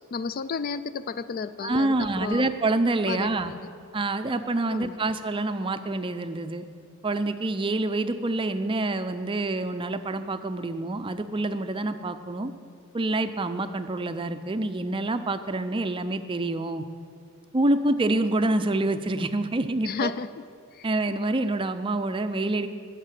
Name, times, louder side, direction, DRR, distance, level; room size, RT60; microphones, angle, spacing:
voice 1, 0.0-1.9 2.2-2.4 3.0-3.7 4.7-5.0 19.8-20.4 20.7-20.9, left 5 dB, 40° left, 14 dB, 0.3 m, -32 dB
voice 2, 1.6-3.5 3.9-6.6 7.0-12.5 12.9-16.8 17.5-20.1 20.8-22.7, right 2 dB, 25° right, 9 dB, 0.4 m, -27 dB
11.0 x 6.6 x 9.1 m, 2.2 s
head